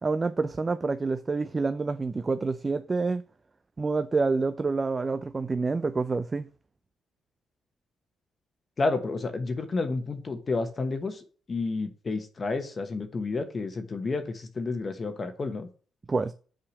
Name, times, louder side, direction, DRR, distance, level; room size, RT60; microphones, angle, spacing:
voice 1, 0.0-3.2 3.8-6.5 16.1-16.3, right 3 dB, 25° right, 0.4 m, -27 dB
voice 2, 8.8-15.7, left 3 dB, 35° left, 1.1 m, -30 dB
5.8 x 4.9 x 6.2 m
cardioid pair, 90°, 0 cm